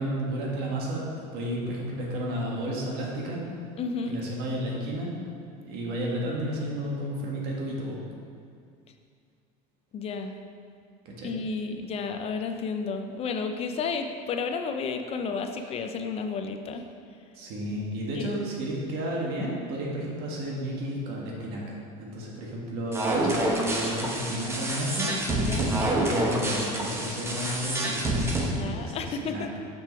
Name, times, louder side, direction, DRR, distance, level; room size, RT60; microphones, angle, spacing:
voice 1, 0.0-3.4 4.1-5.1 5.6-8.0 11.1-11.3 17.3-25.2 25.5-29.6, right 1 dB, 60° right, -3 dB, 1.8 m, -32 dB
voice 2, 3.8-4.2 9.9-10.3 11.2-16.8 18.2-18.3 25.4-25.7 28.6-29.5, left 5 dB, 35° left, 6 dB, 0.6 m, -32 dB
sound 1, 22.9-28.4, right 1 dB, 15° right, 0.9 m, -27 dB
6.9 x 6.0 x 4.7 m, 2.3 s
cardioid pair, 145°, 19 cm